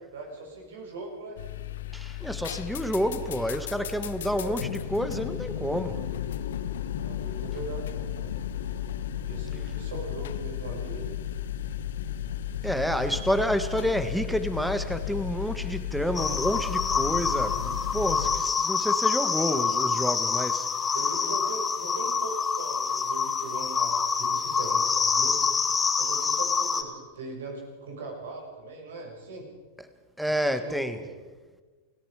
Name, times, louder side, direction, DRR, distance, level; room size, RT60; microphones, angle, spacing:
voice 1, 0.0-1.4 4.2-4.6 7.0-8.4 9.1-11.2 20.9-25.4 26.0-29.5 30.2-31.1, right 2 dB, 70° right, 1 dB, 6.9 m, -40 dB
sound 1, 1.4-18.4, left 10 dB, 70° left, 1.0 m, -34 dB
voice 2, 1.9-6.0 12.6-20.7 30.2-31.0, equal, ahead, 10 dB, 1.8 m, -29 dB
sound 2, 16.1-26.8, left 5 dB, 20° left, 2.3 m, -26 dB
29.5 x 17.0 x 5.2 m, 1.3 s
figure-of-eight pair, 95°, 0 cm